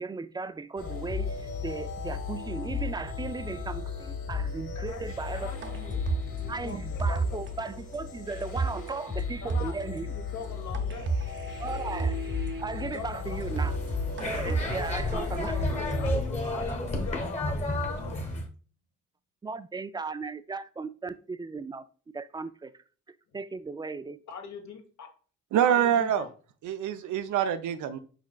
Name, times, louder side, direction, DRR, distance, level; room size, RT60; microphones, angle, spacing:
voice 1, 0.0-5.5 6.5-10.1 11.6-12.2 12.6-13.8 14.2-15.6 19.4-21.8 22.1-22.7 23.3-24.2, right 4 dB, 15° right, 0.3 m, -36 dB
sound 1, 0.8-16.2, left 5 dB, 45° left, 1.8 m, -35 dB
voice 2, 4.7-6.0 6.4-7.4 9.4-9.7 10.1-11.1 12.8-13.6 14.8-18.3 24.3-25.1 25.6-26.3, left 5 dB, 65° left, 1.3 m, -43 dB
sound 2, 5.6-7.6 7.9-8.0 8.4-8.9 9.2-9.3 9.5-10.0 10.7-12.6 13.0-13.1 13.4-13.9 14.2-16.7, right 4 dB, 40° right, 0.8 m, -32 dB
sound 3, 13.0-18.5, left 1 dB, 25° left, 1.1 m, -32 dB
voice 3, 25.5-26.2 26.6-28.0, right 9 dB, 75° right, 0.6 m, -25 dB
4.9 x 4.2 x 2.3 m
cardioid pair, 90°, 30 cm